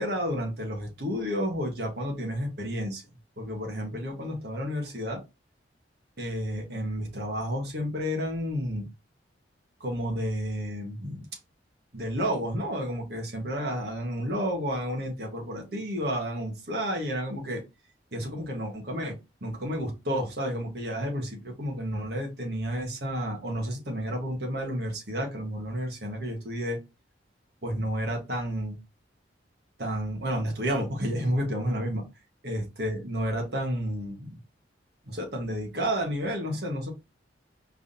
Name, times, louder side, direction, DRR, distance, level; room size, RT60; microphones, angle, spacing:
voice 1, 0.0-3.0 3.4-5.2 6.2-8.9 9.8-11.3 11.9-17.6 18.1-19.1 19.4-26.8 27.6-28.8 29.8-32.0 32.4-34.4 35.1-36.9, equal, 60° right, 1 dB, 1.5 m, -31 dB
4.7 x 3.6 x 2.8 m, 0.25 s
head